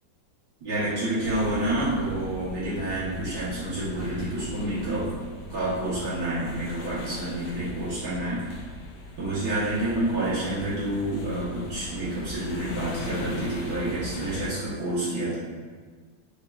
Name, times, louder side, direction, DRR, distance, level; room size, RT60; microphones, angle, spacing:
voice 1, 0.6-5.1 5.5-8.5 9.2-15.4, right 1 dB, 60° right, -10 dB, 1.4 m, -28 dB
sound 1, 1.2-14.5, left 1 dB, 85° left, 1.4 m, -39 dB
4.9 x 3.1 x 2.3 m, 1.5 s
omnidirectional pair, 2.0 m